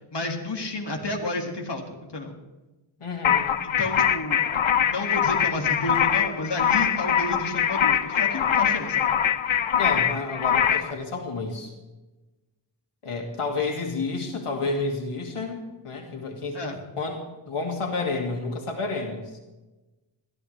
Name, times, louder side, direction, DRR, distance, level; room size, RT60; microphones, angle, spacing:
voice 1, 0.1-2.4 3.6-4.5 4.9-9.1 16.5-16.8, left 2 dB, 55° left, 1 dB, 2.3 m, -31 dB
voice 2, 3.0-3.5 9.8-11.7 13.0-16.6 17.0-19.4, left 3 dB, 90° left, 1 dB, 2.4 m, -30 dB
sound 1, 3.2-10.9, left 8 dB, 70° left, 0.8 m, -23 dB
21.0 x 15.0 x 3.3 m, 1.1 s
wide cardioid pair, 60°, 50 cm